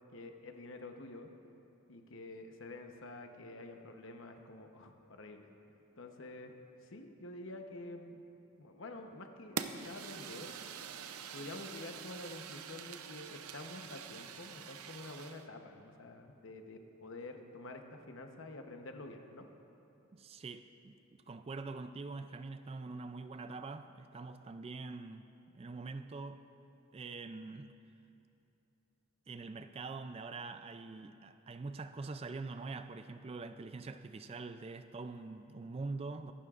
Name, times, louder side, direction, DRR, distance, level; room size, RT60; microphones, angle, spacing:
voice 1, 0.1-1.3 1.9-5.5 6.0-6.5 6.8-8.2 8.6-10.5 11.3-19.5, left 2 dB, 60° left, 4 dB, 0.9 m, -48 dB
Fire, 9.6-15.5, right 7 dB, 85° right, 0.6 m, -45 dB
voice 2, 20.1-25.3 25.5-26.4 26.9-27.7 29.3-36.3, right 3 dB, 25° right, 9 dB, 0.3 m, -44 dB
24.0 x 12.0 x 2.5 m, 2.8 s
head